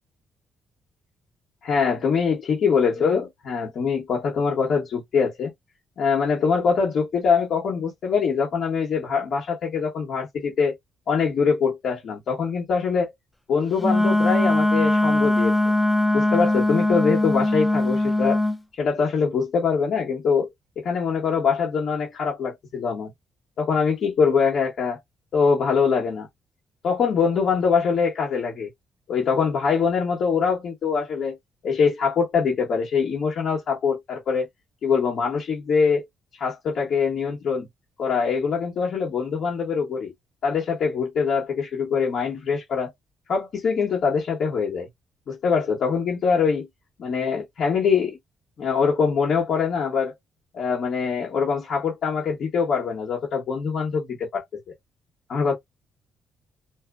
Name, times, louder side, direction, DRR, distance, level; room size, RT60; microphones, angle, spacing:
voice 1, 1.6-5.5 6.0-10.7 11.1-13.1 13.5-15.5 16.1-18.4 18.8-20.5 20.8-23.1 23.6-25.0 25.3-26.3 26.8-28.7 29.1-31.4 31.6-34.5 34.8-36.0 36.4-37.7 38.0-40.1 40.4-42.9 43.3-44.9 45.3-46.7 47.0-48.2 48.6-50.1 50.5-54.4 55.3-55.5, left 5 dB, 65° left, 0.9 m, -23 dB
Wind instrument woodwind instrument, 13.8-18.6, left 1 dB, 5° left, 0.4 m, -21 dB
2.6 x 2.0 x 2.3 m
cardioid pair, 90°, 0 cm